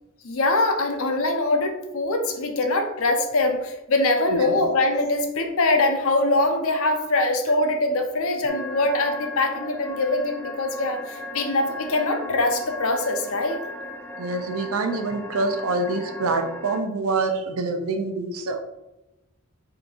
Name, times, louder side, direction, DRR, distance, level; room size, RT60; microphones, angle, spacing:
voice 1, 0.2-13.6, left 2 dB, 65° left, 5 dB, 0.7 m, -23 dB
sound 1, 8.5-16.8, left 1 dB, 10° left, 0.4 m, -37 dB
voice 2, 14.2-18.6, right 3 dB, 70° right, 6 dB, 0.5 m, -26 dB
3.7 x 2.6 x 4.4 m, 0.97 s
head